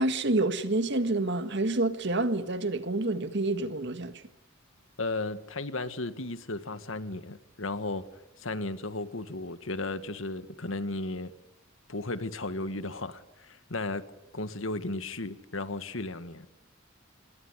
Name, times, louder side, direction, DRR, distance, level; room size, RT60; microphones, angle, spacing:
voice 1, 0.0-4.1, right 2 dB, 60° right, 1.8 m, -28 dB
voice 2, 5.0-8.1 8.4-11.3 11.9-14.0 14.3-16.5, left 2 dB, 75° left, 1.8 m, -35 dB
27.0 x 22.0 x 9.7 m
head